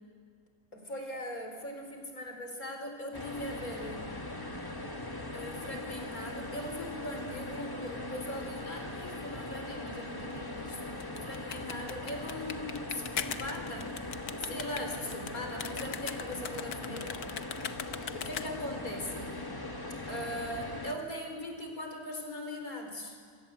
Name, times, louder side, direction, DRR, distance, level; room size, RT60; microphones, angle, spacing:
voice 1, 0.7-4.1 5.3-10.8 11.2-14.1 14.4-17.4 18.1-19.4 20.1-23.2, left 1 dB, 55° left, 3 dB, 4.6 m, -40 dB
sound 1, 3.1-20.9, left 2 dB, 15° left, 1.4 m, -40 dB
sound 2, 10.9-18.8, left 9 dB, 85° left, 1.6 m, -40 dB
28.0 x 23.5 x 8.0 m, 2.1 s
omnidirectional pair, 1.8 m